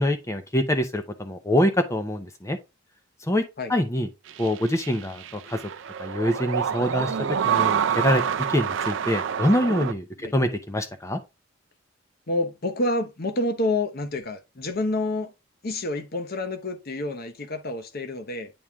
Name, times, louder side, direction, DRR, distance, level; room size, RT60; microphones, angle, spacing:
voice 1, 0.0-2.6 3.2-3.4 3.7-4.1 4.4-5.6 6.0-8.2 8.5-10.1 10.3-11.2, left 1 dB, 15° left, 0.6 m, -25 dB
sound 1, 4.3-9.9, right 8 dB, 60° right, 0.4 m, -27 dB
voice 2, 12.3-15.3 15.6-18.5, left 2 dB, 45° left, 0.8 m, -28 dB
8.7 x 3.2 x 3.4 m
head